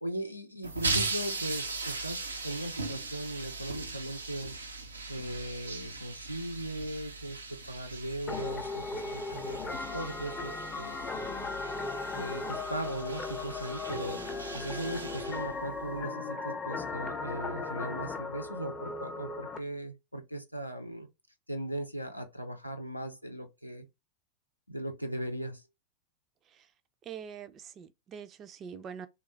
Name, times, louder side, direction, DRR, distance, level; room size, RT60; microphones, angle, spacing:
voice 1, 0.0-4.5 5.1-10.9 12.2-14.2 14.5-21.1 21.5-23.9 24.7-25.6, right 1 dB, 90° left, 0.6 m, -38 dB
sound 1, 0.6-16.0, right 3 dB, 80° right, 0.6 m, -39 dB
sound 2, 8.3-19.6, left 3 dB, 15° left, 0.6 m, -37 dB
voice 2, 27.1-29.1, right 7 dB, 30° right, 0.4 m, -44 dB
3.2 x 2.4 x 3.2 m
figure-of-eight pair, 90°, 0 cm